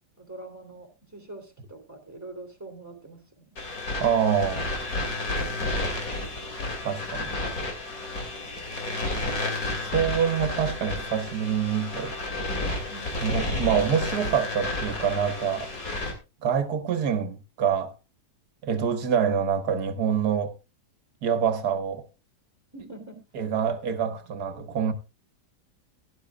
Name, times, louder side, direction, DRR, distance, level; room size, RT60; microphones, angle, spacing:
voice 1, 0.2-3.5 12.9-13.3 22.7-23.2 24.9-25.0, right 2 dB, 10° right, 3.0 m, -44 dB
sound 1, 3.6-16.1, left 2 dB, 55° left, 3.2 m, -31 dB
voice 2, 4.0-4.7 6.8-7.3 9.8-12.1 13.2-15.7 16.4-17.9 18.6-20.5 21.2-22.0 23.3-24.9, right 7 dB, 65° right, 1.7 m, -26 dB
17.0 x 11.0 x 2.4 m
omnidirectional pair, 1.8 m